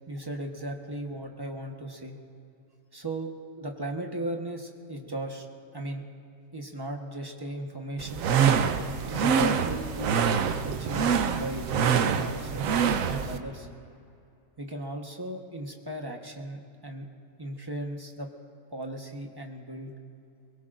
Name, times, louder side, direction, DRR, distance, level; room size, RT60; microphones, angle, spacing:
voice 1, 0.1-2.2 2.9-3.3 3.6-5.5 5.7-6.0 6.5-8.2 9.1-10.2 10.6-12.8 13.1-13.7 14.6-17.1 17.4-18.3 18.7-19.9, right 1 dB, 20° right, 2 dB, 1.2 m, -36 dB
sound 1, 8.0-13.4, right 7 dB, 75° right, 1.1 m, -25 dB
23.0 x 22.0 x 2.6 m, 2.4 s
omnidirectional pair, 1.4 m